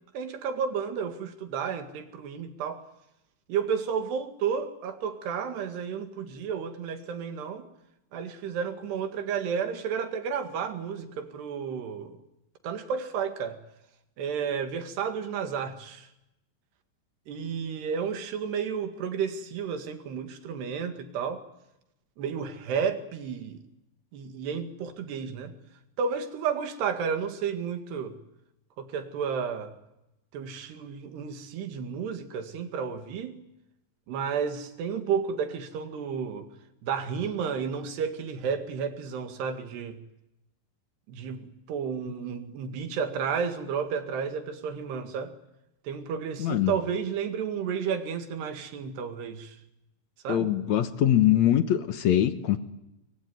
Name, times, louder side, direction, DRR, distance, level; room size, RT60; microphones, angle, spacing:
voice 1, 0.1-2.8 3.5-7.7 8.1-12.2 12.6-13.6 14.2-16.1 17.3-21.4 22.2-23.6 24.1-25.5 26.0-28.2 28.8-29.7 30.3-33.4 34.1-36.5 36.8-40.0 41.1-45.3 45.9-49.6 50.2-50.5, right 6 dB, 75° right, 7 dB, 4.1 m, -32 dB
voice 2, 46.4-46.7 50.3-52.6, left 11 dB, 75° left, 10 dB, 1.7 m, -23 dB
25.0 x 23.0 x 9.4 m, 0.88 s
omnidirectional pair, 4.9 m